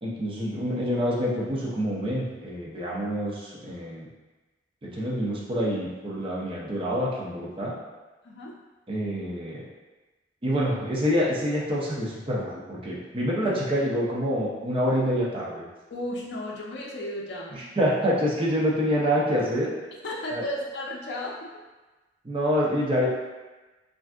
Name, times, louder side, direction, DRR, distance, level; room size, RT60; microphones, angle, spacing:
voice 1, 0.0-4.1 4.8-7.7 8.9-9.7 10.4-15.6 17.8-19.7 20.3-20.4 22.2-23.1, equal, 30° right, -5 dB, 0.6 m, -26 dB
voice 2, 8.2-8.5 13.4-13.5 15.9-17.6 20.0-21.6, left 1 dB, 70° left, -3 dB, 0.4 m, -34 dB
3.3 x 2.5 x 2.4 m, 1.2 s
head